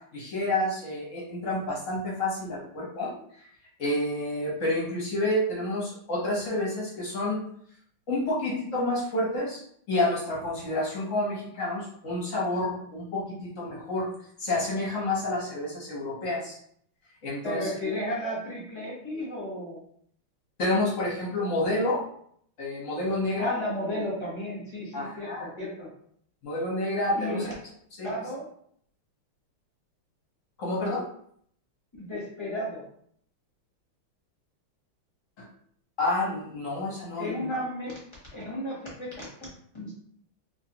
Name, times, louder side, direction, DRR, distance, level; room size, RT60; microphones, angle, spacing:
voice 1, 0.1-3.1 3.8-7.4 8.1-9.6 9.9-14.1 14.4-16.5 17.2-17.7 20.6-22.0 22.6-23.6 24.9-25.5 26.4-27.4 28.0-28.1 30.6-31.0 35.4-35.5 36.0-37.5, left 1 dB, 50° left, -5 dB, 0.9 m, -29 dB
voice 2, 17.4-19.8 23.4-25.9 27.1-27.5 28.0-28.4 32.0-32.8 37.2-37.9 38.3-39.2 39.7-39.9, left 1 dB, 25° left, -7 dB, 0.6 m, -33 dB
3.1 x 2.7 x 2.8 m, 0.65 s
omnidirectional pair, 2.4 m